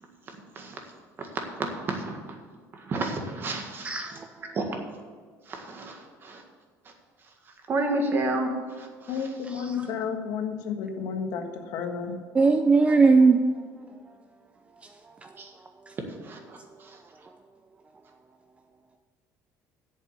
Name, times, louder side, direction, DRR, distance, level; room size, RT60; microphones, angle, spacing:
voice 1, 1.2-2.4 2.7-4.0 4.5-4.8 5.5-6.4 7.7-9.2 15.4-15.5 16.2-17.0, right 2 dB, 35° right, 3 dB, 1.8 m, -31 dB
voice 2, 3.8-4.3 12.3-13.4 15.2-15.3, right 4 dB, 20° right, 7 dB, 0.5 m, -19 dB
voice 3, 9.1-12.2, left 6 dB, 70° left, 5 dB, 1.5 m, -32 dB
7.9 x 7.4 x 8.3 m, 1.5 s
cardioid pair, 135°, 7 cm